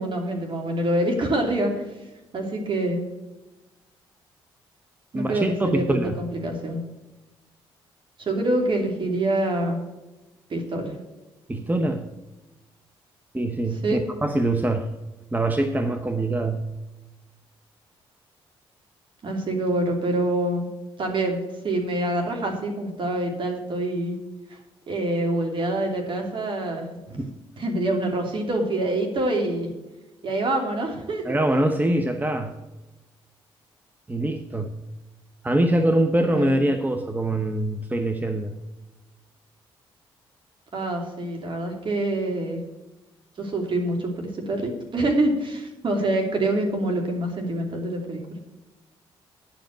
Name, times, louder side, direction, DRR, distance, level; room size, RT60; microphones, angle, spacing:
voice 1, 0.0-1.9 2.3-3.0 5.1-6.8 8.2-9.8 10.5-11.0 13.7-14.0 19.2-20.7 21.0-24.1 24.5-24.6 24.9-26.9 27.2-27.3 27.6-29.7 30.2-31.4 36.3-36.6 40.7-42.6 43.4-48.2, right 1 dB, 50° right, 2 dB, 2.9 m, -26 dB
voice 2, 5.1-6.2 11.5-12.1 13.3-15.0 15.3-16.8 27.2-27.3 31.2-32.6 34.1-34.9 35.4-38.6, right 1 dB, 15° right, 7 dB, 0.9 m, -24 dB
10.5 x 5.1 x 7.8 m, 1.1 s
supercardioid pair, 60°, 11 cm